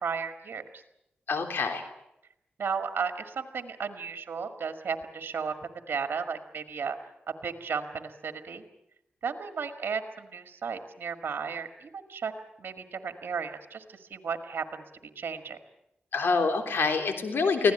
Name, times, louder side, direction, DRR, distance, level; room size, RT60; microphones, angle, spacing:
voice 1, 0.0-0.8 2.6-7.0 7.4-8.6 9.2-12.3 12.6-14.8 15.2-15.6, right 6 dB, 80° right, 7 dB, 1.9 m, -34 dB
voice 2, 1.3-1.8 16.1-17.7, left 4 dB, 85° left, 6 dB, 3.5 m, -26 dB
24.5 x 16.5 x 9.0 m, 0.85 s
cardioid pair, 70°, 4 cm